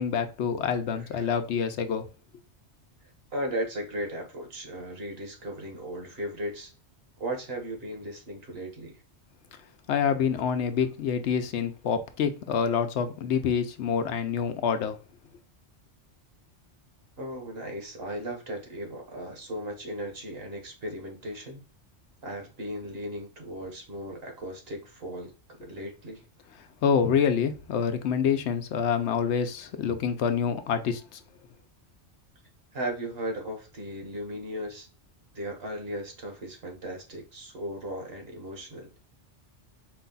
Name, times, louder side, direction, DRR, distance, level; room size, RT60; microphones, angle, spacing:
voice 1, 0.0-2.0 9.9-15.0 26.8-31.2, left 7 dB, 75° left, 0.9 m, -27 dB
voice 2, 1.0-1.3 3.3-6.7 7.2-9.0 17.2-21.6 22.2-25.3 25.6-26.2 32.7-34.9 35.3-38.9, right 1 dB, 60° right, 1.4 m, -36 dB
4.8 x 2.3 x 3.8 m
omnidirectional pair, 1.2 m